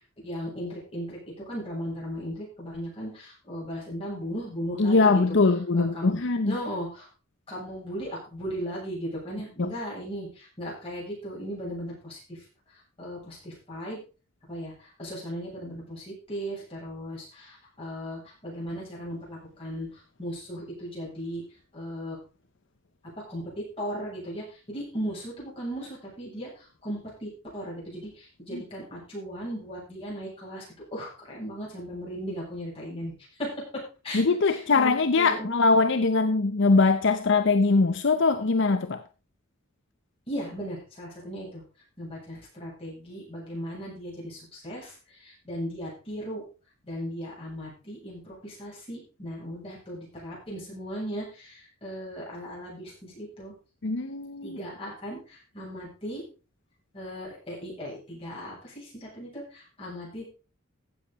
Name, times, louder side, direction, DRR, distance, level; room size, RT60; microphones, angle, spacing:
voice 1, 0.2-1.2 1.5-5.2 5.7-6.2 6.4-7.1 7.5-12.4 13.0-14.0 14.5-21.4 21.7-22.2 23.2-30.6 30.9-33.1 33.4-35.5 40.3-41.6 42.0-46.4 46.8-53.5 54.4-56.2 56.9-60.3, equal, 25° left, -4 dB, 7.7 m, -37 dB
voice 2, 4.8-6.6 9.6-9.7 28.5-28.6 34.1-39.0 53.8-54.6, left 3 dB, 60° left, 10 dB, 0.7 m, -22 dB
15.5 x 7.4 x 4.2 m, 0.33 s
head